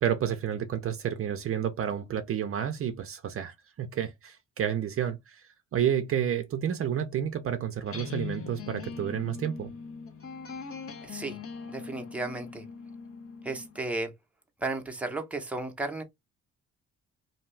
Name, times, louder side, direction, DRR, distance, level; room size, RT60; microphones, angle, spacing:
voice 1, 0.0-9.7, right 9 dB, 45° right, 0.5 m, -30 dB
sound 1, 7.8-13.8, left 5 dB, 50° left, 0.7 m, -41 dB
voice 2, 11.0-11.4 11.7-12.6 13.4-14.1 14.6-16.0, right 2 dB, 5° right, 0.7 m, -34 dB
2.7 x 2.3 x 3.1 m
cardioid pair, 90°, 30 cm